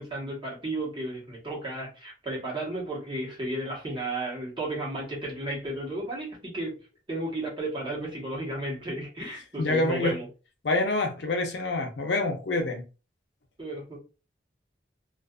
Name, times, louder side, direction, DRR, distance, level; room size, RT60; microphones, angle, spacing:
voice 1, 0.0-6.8 7.1-10.3 13.6-14.0, right 1 dB, 25° right, 1.1 m, -33 dB
voice 2, 9.6-10.2 10.6-12.8, left 2 dB, 70° left, 0.6 m, -26 dB
2.4 x 2.4 x 2.3 m
head